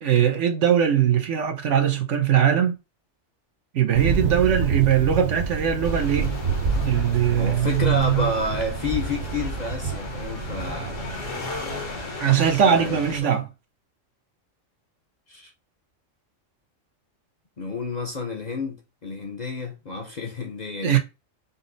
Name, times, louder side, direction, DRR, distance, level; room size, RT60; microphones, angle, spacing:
voice 1, 0.0-2.8 3.7-6.4 6.8-8.3 12.2-13.5 20.8-21.0, right 9 dB, 70° right, 1.1 m, -21 dB
Thunder, 3.9-12.2, right 5 dB, 45° right, 0.7 m, -28 dB
sound 1, 5.8-13.2, left 2 dB, 70° left, 1.4 m, -35 dB
voice 2, 7.3-11.0 12.6-13.4 15.3-15.5 17.6-21.0, left 3 dB, 40° left, 0.7 m, -30 dB
5.3 x 2.0 x 3.9 m
omnidirectional pair, 1.3 m